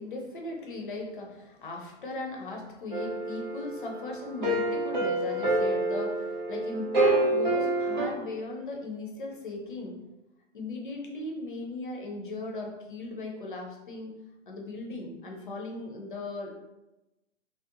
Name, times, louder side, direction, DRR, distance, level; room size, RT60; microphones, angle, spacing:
voice 1, 0.0-10.0 10.5-14.1 14.5-16.7, left 2 dB, 40° left, 0 dB, 0.5 m, -38 dB
sound 1, 2.9-8.1, right 2 dB, 40° right, 0.5 m, -27 dB
2.7 x 2.0 x 2.5 m, 1.0 s
figure-of-eight pair, 125°, 38 cm